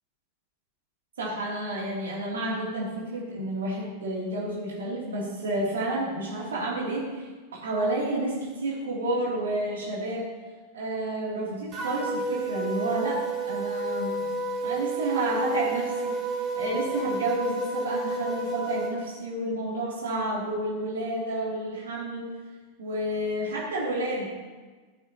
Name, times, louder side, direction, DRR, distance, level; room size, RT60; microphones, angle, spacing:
voice 1, 1.2-7.3 7.6-10.3 10.7-13.2 13.5-14.3 14.6-16.1 16.5-22.3 22.8-24.2, right 1 dB, 65° right, -4 dB, 3.2 m, -30 dB
sound 1, 11.7-18.9, right 2 dB, 30° right, 3.6 m, -30 dB
14.0 x 8.2 x 3.0 m, 1.4 s
figure-of-eight pair, 90°, 0 cm